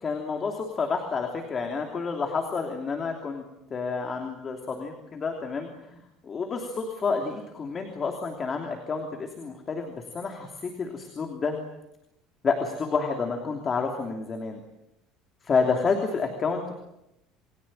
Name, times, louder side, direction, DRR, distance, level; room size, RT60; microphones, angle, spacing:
voice 1, 0.0-3.4 3.7-11.6 12.4-14.6 15.4-16.7, left 4 dB, 20° left, 3 dB, 3.1 m, -29 dB
29.0 x 22.5 x 8.9 m, 0.87 s
cardioid pair, 175°, 0 cm